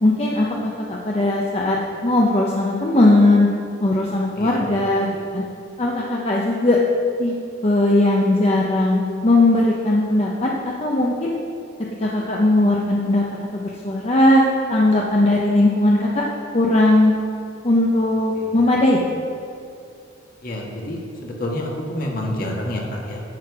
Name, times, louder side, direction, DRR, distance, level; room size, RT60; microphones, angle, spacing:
voice 1, 0.0-3.5 3.8-5.1 5.3-5.4 5.8-6.8 7.2-7.3 7.6-11.3 12.0-13.2 13.5-16.2 16.5-17.1 17.6-19.0, left 1 dB, 35° left, -2 dB, 0.8 m, -18 dB
voice 2, 20.4-23.2, left 1 dB, 50° left, -1 dB, 1.7 m, -28 dB
10.5 x 7.8 x 4.9 m, 2.6 s
head